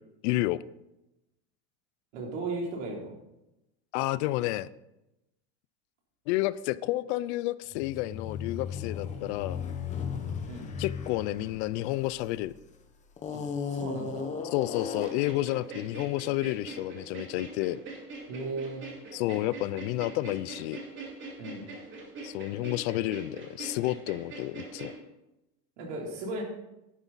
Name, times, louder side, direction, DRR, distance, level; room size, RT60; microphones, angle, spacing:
voice 1, 0.2-0.6 3.9-4.7 6.3-9.6 10.8-12.5 14.5-17.8 19.1-20.8 22.2-24.9, left 16 dB, 70° left, 18 dB, 0.5 m, -30 dB
voice 2, 2.1-3.1 10.5-10.7 13.3-14.3 18.3-18.8 21.4-21.6 25.8-26.4, right 2 dB, 85° right, -1 dB, 3.7 m, -36 dB
sound 1, 7.7-12.5 13.2-15.4, left 6 dB, 20° left, 1.0 m, -36 dB
sound 2, 15.0-24.9, right 3 dB, 35° right, 2.5 m, -43 dB
11.0 x 9.9 x 4.1 m, 0.92 s
cardioid pair, 165°, 35 cm